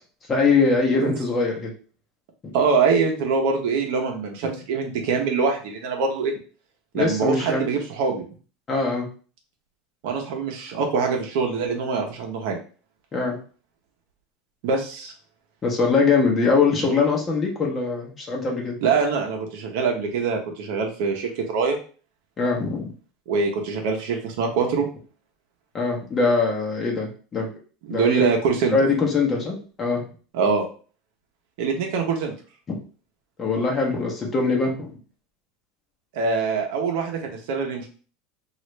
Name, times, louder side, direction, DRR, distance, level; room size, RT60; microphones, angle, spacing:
voice 1, 0.3-1.7 2.4-2.5 6.9-7.6 8.7-9.1 13.1-13.4 15.6-18.8 22.4-22.9 25.7-27.5 27.9-28.3 28.7-30.0 32.7-32.8 33.4-34.9, left 4 dB, 25° left, 0 dB, 0.8 m, -22 dB
voice 2, 0.9-1.2 2.5-6.3 6.9-8.2 10.0-12.6 14.6-15.1 18.8-21.8 23.3-24.9 27.9-28.8 30.3-30.7 31.6-32.3 36.1-37.9, right 5 dB, 70° right, 2 dB, 0.7 m, -24 dB
3.1 x 2.4 x 3.1 m, 0.39 s
supercardioid pair, 145°, 0 cm